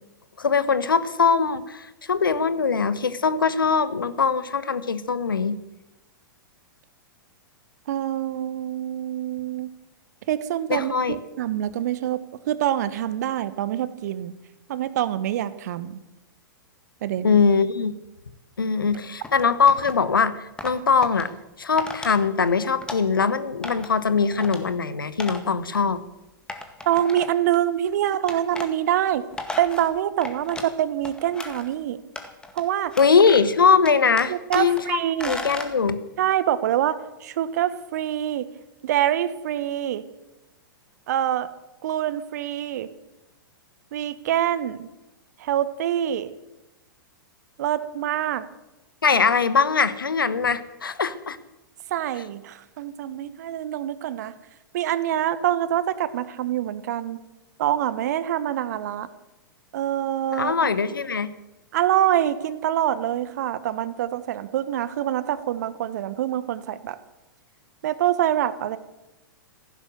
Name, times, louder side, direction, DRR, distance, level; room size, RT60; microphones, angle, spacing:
voice 1, 0.4-5.6 10.7-11.2 17.2-17.9 18.6-21.3 21.6-26.0 33.0-35.0 35.2-36.0 49.0-51.4 60.3-61.3, left 5 dB, 70° left, 14 dB, 1.2 m, -21 dB
voice 2, 7.9-9.7 10.3-14.3 14.7-16.0 17.0-17.4 26.9-29.2 29.6-32.0 32.5-32.9 34.3-35.3 36.2-38.5 38.8-40.0 41.1-41.5 41.8-42.9 43.9-44.9 45.4-46.3 47.6-48.5 51.9-54.3 54.7-57.2 57.6-59.1 59.7-60.7 61.7-67.0 67.8-68.8, right 11 dB, 50° right, 15 dB, 1.2 m, -25 dB
sound 1, 19.2-20.0 20.6-21.2 21.8-22.1 22.5-23.3 23.6-24.0 24.3-24.6 25.2-25.4 25.7-25.8 26.5-27.5 28.3-28.7 29.1-30.7 31.0-31.7 32.1-32.6 32.9-33.6 33.8-34.8 35.2-35.7, left 2 dB, 5° left, 1.9 m, -36 dB
15.5 x 11.5 x 7.8 m, 1.0 s
figure-of-eight pair, 105°, 12 cm